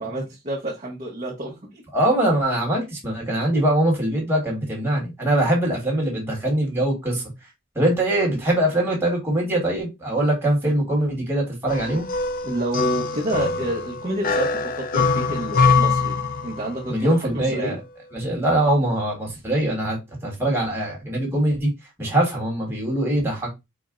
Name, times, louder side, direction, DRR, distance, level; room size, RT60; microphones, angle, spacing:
voice 1, 0.0-1.8 3.5-3.6 12.4-16.2 16.4-17.8, right 1 dB, 30° right, 0.8 m, -29 dB
voice 2, 1.9-7.2 7.7-12.1 16.9-17.8 18.1-21.7 22.0-23.5, right 1 dB, 10° right, 1.4 m, -22 dB
sound 1, 11.7-16.9, left 4 dB, 40° left, 0.4 m, -23 dB
4.2 x 2.1 x 3.6 m
head